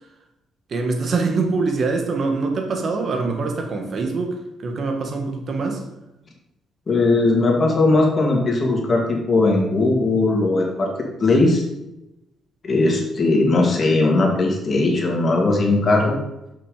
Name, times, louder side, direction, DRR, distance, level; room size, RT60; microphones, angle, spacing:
voice 1, 0.7-4.3 4.6-5.8, right 3 dB, 50° right, 3 dB, 1.6 m, -24 dB
voice 2, 6.9-10.9 11.2-11.6 12.6-16.2, left 2 dB, 40° left, 0 dB, 2.1 m, -18 dB
6.1 x 6.0 x 5.0 m, 0.91 s
cardioid pair, 90°, 0 cm